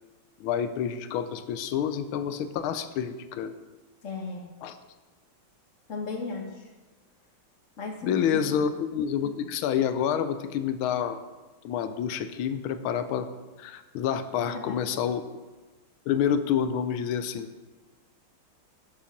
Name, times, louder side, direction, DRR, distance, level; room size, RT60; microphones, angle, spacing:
voice 1, 0.4-3.5 4.6-4.8 8.0-11.2 11.6-13.3 13.6-15.4 16.1-17.7, left 8 dB, 75° left, 11 dB, 1.4 m, -28 dB
voice 2, 4.0-4.4 5.9-6.4 7.8-8.6 14.6-14.8, left 4 dB, 40° left, 2 dB, 1.3 m, -35 dB
7.1 x 7.0 x 5.8 m, 1.2 s
omnidirectional pair, 2.4 m